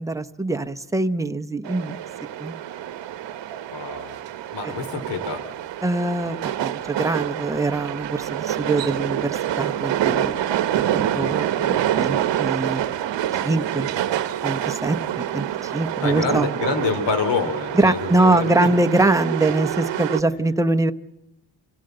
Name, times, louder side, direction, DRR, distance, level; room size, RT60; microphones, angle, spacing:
voice 1, 0.0-2.0 2.4-2.6 4.6-4.7 5.8-10.4 10.7-12.8 13.4-13.9 14.4-16.5 17.7-20.9, right 2 dB, 5° right, 8 dB, 0.8 m, -23 dB
sound 1, 1.6-20.2, right 11 dB, 70° right, 1.0 m, -27 dB
voice 2, 3.7-4.2 4.5-5.4 11.1-11.3 11.6-11.9 16.0-18.7, left 4 dB, 65° left, 8 dB, 3.3 m, -27 dB
27.0 x 16.5 x 7.8 m, 0.90 s
wide cardioid pair, 145°, 45 cm